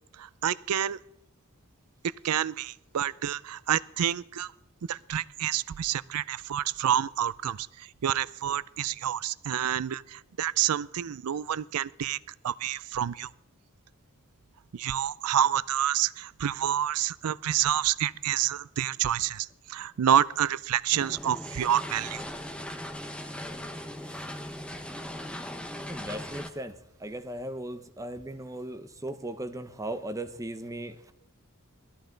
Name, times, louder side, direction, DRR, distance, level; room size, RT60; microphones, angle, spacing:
voice 1, 0.2-1.0 2.2-4.5 4.9-12.2 12.4-13.3 14.7-22.2, right 10 dB, 85° right, 20 dB, 0.4 m, -28 dB
sound 1, 20.9-26.5, left 1 dB, 5° left, 1.1 m, -39 dB
voice 2, 25.9-31.1, right 1 dB, 15° right, 9 dB, 0.8 m, -37 dB
18.0 x 13.5 x 3.9 m, 0.85 s
head